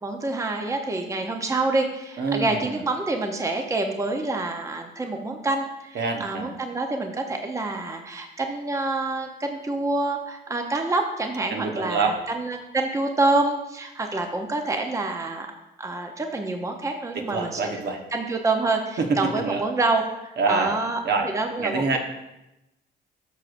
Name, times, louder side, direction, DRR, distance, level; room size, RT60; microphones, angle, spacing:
voice 1, 0.0-15.5 15.8-17.7 18.1-21.0 21.3-22.0, right 2 dB, 15° right, 4 dB, 0.7 m, -27 dB
voice 2, 2.2-2.8 5.9-6.6 11.5-12.2 17.1-18.0 19.0-19.6 20.4-20.8 21.0-21.3 21.6-22.0, right 4 dB, 55° right, 2 dB, 1.2 m, -26 dB
11.0 x 6.3 x 2.6 m, 0.94 s
cardioid pair, 90°, 20 cm